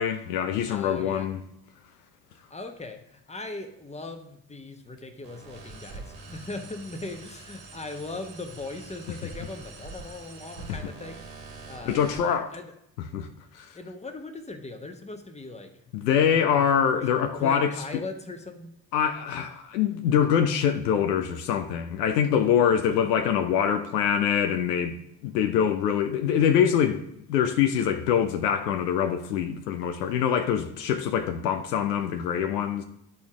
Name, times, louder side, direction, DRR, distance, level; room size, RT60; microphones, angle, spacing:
voice 1, 0.0-1.4 10.7-10.8 11.9-12.5 13.0-13.3 13.5-13.7 15.9-17.7 18.9-25.0 25.2-27.0 27.3-32.8, left 8 dB, 75° left, 0.6 m, -24 dB
voice 2, 0.7-1.3 2.5-11.2 11.7-12.1 12.5-12.7 13.7-16.0 16.3-16.7 17.4-18.7 22.9-23.0, left 2 dB, 15° left, 1.1 m, -39 dB
sound 1, 5.2-12.3, right 3 dB, 55° right, 1.9 m, -44 dB
11.0 x 4.3 x 3.7 m
figure-of-eight pair, 45°, 49 cm